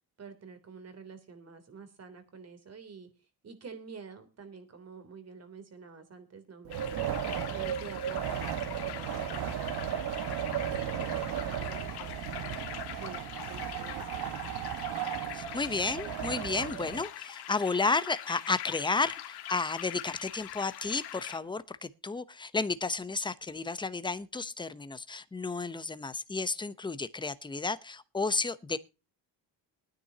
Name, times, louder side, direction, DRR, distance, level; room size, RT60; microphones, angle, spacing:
voice 1, 0.2-7.0 7.5-10.1 10.4-14.5, right 5 dB, 40° right, 3.3 m, -49 dB
Wind, 6.6-17.0, right 10 dB, 70° right, 1.6 m, -35 dB
sound 1, 6.7-21.4, left 13 dB, 75° left, 1.5 m, -43 dB
voice 2, 15.3-28.8, left 3 dB, 10° left, 0.8 m, -32 dB
21.5 x 9.8 x 2.8 m
cardioid pair, 105°, 39 cm